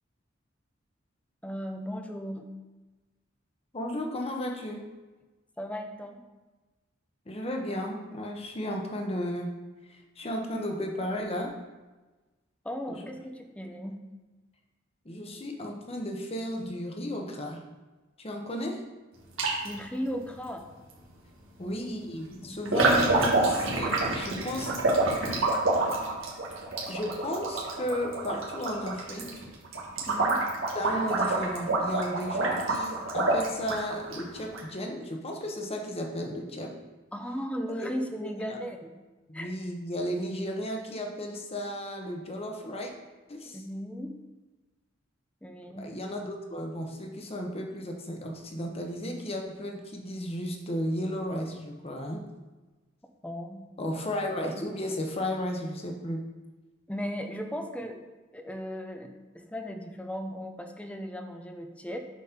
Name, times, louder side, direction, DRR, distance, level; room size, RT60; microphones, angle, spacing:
voice 1, 1.4-2.5 5.6-6.3 12.6-14.1 19.6-20.7 21.6-21.9 22.4-22.6 30.1-30.5 37.1-39.0 39.3-39.5 43.4-44.1 45.4-45.9 53.0-53.7 56.9-58.0 58.3-62.0, equal, 5° left, 5 dB, 0.6 m, -37 dB
voice 2, 3.7-4.9 7.3-9.6 9.9-11.5 12.9-13.1 15.0-17.6 18.2-18.8 21.6-25.1 26.9-29.5 30.7-36.8 37.8-37.9 38.2-38.6 39.3-42.9 43.3-43.6 45.8-52.2 53.8-56.3, left 1 dB, 30° left, 2 dB, 1.0 m, -34 dB
sound 1, 19.4-19.8 20.9-21.0 22.7-34.6, right 2 dB, 80° right, 1.7 m, -27 dB
7.3 x 4.2 x 5.8 m, 1.2 s
head